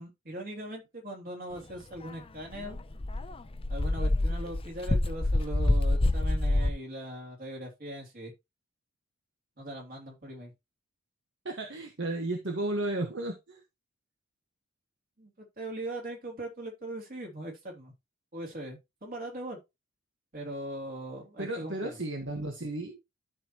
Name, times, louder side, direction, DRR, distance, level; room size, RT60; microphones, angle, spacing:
voice 1, 0.0-2.8 3.7-8.3 9.6-10.5 15.2-17.9 18.3-19.6 20.3-22.0, right 1 dB, 45° right, 3.0 m, -40 dB
Dog, 2.1-2.2 2.5-6.7, left 2 dB, 30° left, 0.6 m, -27 dB
voice 2, 11.4-13.6 21.4-23.0, right 2 dB, 60° right, 1.4 m, -33 dB
12.5 x 4.6 x 3.0 m
head